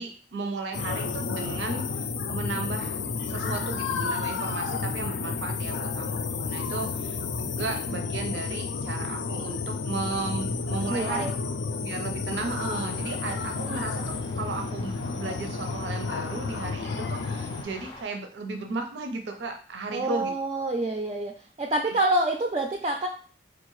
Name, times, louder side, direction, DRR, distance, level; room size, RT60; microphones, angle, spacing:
voice 1, 0.0-11.3 11.8-20.3, right 3 dB, 85° right, 4 dB, 0.5 m, -35 dB
sound 1, 0.7-17.6, left 4 dB, 80° left, 0.4 m, -31 dB
voice 2, 10.9-11.3 19.9-21.3 21.6-23.1, right 2 dB, 30° right, 2 dB, 0.3 m, -27 dB
sound 2, 12.8-18.0, left 1 dB, 25° left, 0.5 m, -45 dB
4.5 x 2.4 x 3.1 m, 0.40 s
head